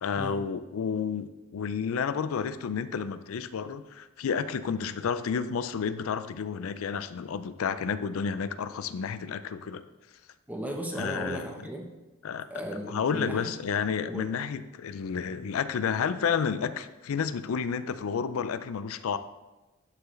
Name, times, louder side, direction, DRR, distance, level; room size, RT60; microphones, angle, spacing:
voice 1, 0.0-9.8 11.0-11.5 12.2-12.5 12.9-19.2, left 6 dB, 80° left, 13 dB, 0.4 m, -31 dB
voice 2, 10.5-11.9 12.5-13.5 14.1-14.2, right 1 dB, 10° right, 0 dB, 1.0 m, -35 dB
11.5 x 4.5 x 3.2 m, 1.1 s
head